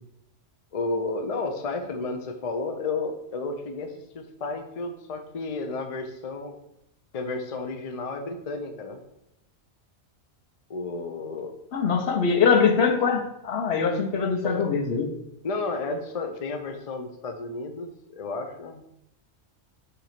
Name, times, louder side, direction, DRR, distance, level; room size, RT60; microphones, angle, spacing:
voice 1, 0.7-6.6 7.1-9.0 10.7-11.6 14.4-14.7 15.4-19.0, left 3 dB, 40° left, 6 dB, 0.6 m, -32 dB
voice 2, 11.7-15.1, left 5 dB, 70° left, 5 dB, 1.0 m, -23 dB
5.9 x 2.9 x 5.7 m, 0.79 s
omnidirectional pair, 1.2 m